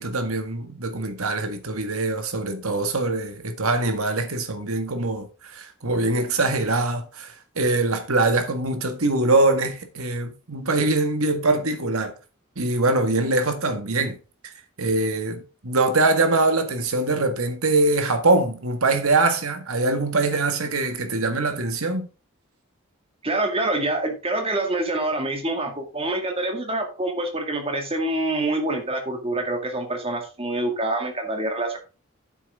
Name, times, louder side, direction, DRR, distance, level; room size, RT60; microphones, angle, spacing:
voice 1, 0.0-12.1 12.5-14.2 14.4-14.5 14.8-22.1, right 2 dB, 90° right, 1.8 m, -23 dB
voice 2, 23.2-31.8, right 2 dB, 25° right, 2.1 m, -26 dB
9.2 x 7.6 x 3.7 m
head